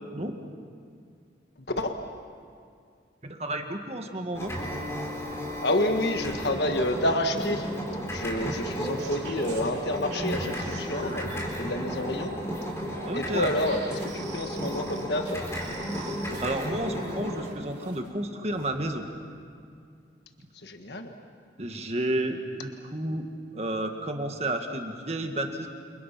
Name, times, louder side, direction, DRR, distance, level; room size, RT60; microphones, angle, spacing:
voice 1, 3.2-4.5 13.1-13.5 15.9-19.0 21.6-23.3 23.5-25.7, right 1 dB, 35° right, 4 dB, 1.9 m, -31 dB
sound 1, 4.3-17.5, equal, 15° left, 4.5 m, -34 dB
voice 2, 5.6-7.7 8.0-11.3 11.6-12.3 13.1-15.4 20.6-21.1, left 1 dB, 60° left, 5 dB, 1.5 m, -29 dB
sound 2, 8.5-11.4 11.8-12.5 12.9-17.1 17.4-18.1 18.5-18.8, right 3 dB, 65° right, 4.5 m, -44 dB
29.0 x 28.0 x 5.9 m, 2.2 s
head